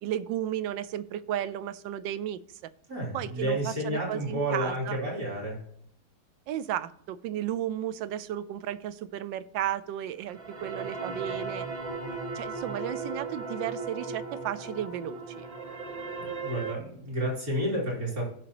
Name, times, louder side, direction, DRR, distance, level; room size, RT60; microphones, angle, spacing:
voice 1, 0.0-2.4 3.1-5.0 6.5-11.7 12.3-15.5, right 11 dB, 90° right, 14 dB, 1.3 m, -34 dB
voice 2, 2.9-5.6 16.2-18.3, right 1 dB, 50° right, -4 dB, 3.7 m, -31 dB
sound 1, 10.2-16.7, right 3 dB, 25° right, 0.9 m, -37 dB
16.5 x 5.9 x 2.9 m, 0.67 s
omnidirectional pair, 2.0 m